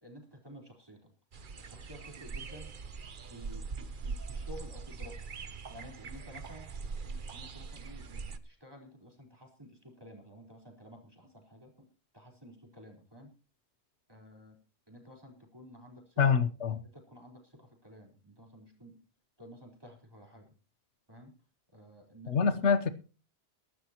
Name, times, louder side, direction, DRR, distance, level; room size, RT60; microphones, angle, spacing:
voice 1, 0.0-1.1 1.6-2.7 3.3-5.3 5.7-6.7 7.0-11.9 12.1-13.3 14.1-14.6 14.9-16.2 16.8-19.0 19.4-20.5 21.1-21.3 21.7-22.7, equal, 20° right, 1 dB, 4.3 m, -52 dB
sound 1, 1.3-8.4, right 4 dB, 50° right, 1.1 m, -42 dB
voice 2, 16.2-16.8 22.3-22.9, left 6 dB, 85° left, 12 dB, 1.3 m, -26 dB
22.0 x 12.0 x 3.0 m, 0.34 s
omnidirectional pair, 1.1 m